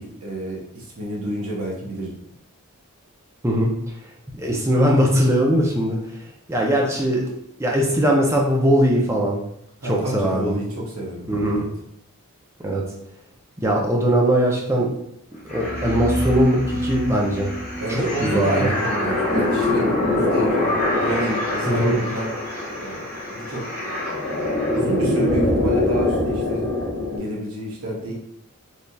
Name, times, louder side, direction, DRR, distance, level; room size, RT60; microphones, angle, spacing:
voice 1, 0.0-2.1 9.8-11.7 17.8-20.7 21.0-22.3 22.8-23.0 23.3-23.6 24.7-26.7 27.0-28.1, right 1 dB, 70° right, -3 dB, 0.8 m, -29 dB
voice 2, 4.3-6.0 6.5-7.2 7.6-9.4 9.8-10.6 11.3-11.7 12.6-12.8 13.6-14.9 15.4-17.5 17.9-18.7 21.7-22.0, equal, 10° right, -2 dB, 0.4 m, -20 dB
sound 1, 15.5-27.2, left 1 dB, 35° left, 1.0 m, -24 dB
3.1 x 2.6 x 2.2 m, 0.75 s
head